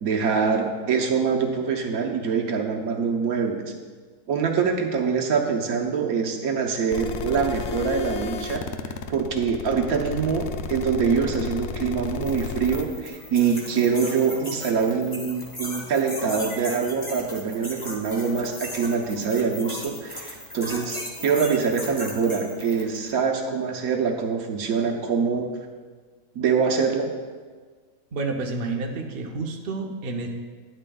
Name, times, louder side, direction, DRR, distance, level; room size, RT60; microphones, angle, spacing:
voice 1, 0.0-3.6 4.3-8.6 9.1-25.5 26.3-27.1, right 5 dB, 70° right, 2 dB, 1.3 m, -24 dB
sound 1, 6.9-12.8, left 6 dB, 65° left, 0.6 m, -33 dB
sound 2, 12.2-23.0, left 1 dB, 20° left, 1.2 m, -37 dB
voice 2, 28.1-30.3, right 3 dB, 45° right, 1 dB, 0.8 m, -29 dB
12.5 x 10.0 x 2.3 m, 1.5 s
omnidirectional pair, 1.6 m